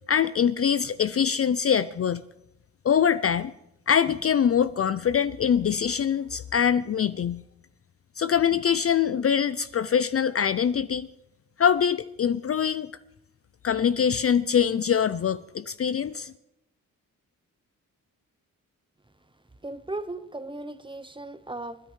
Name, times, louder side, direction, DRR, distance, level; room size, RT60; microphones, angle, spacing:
voice 1, 0.1-2.2 2.8-3.5 3.9-7.4 8.2-11.1 11.6-12.9 13.6-16.3, left 8 dB, 40° left, 14 dB, 0.4 m, -23 dB
voice 2, 19.6-21.8, right 2 dB, 15° right, 12 dB, 0.9 m, -36 dB
29.0 x 10.0 x 3.2 m, 0.86 s
cardioid pair, 70°, 35 cm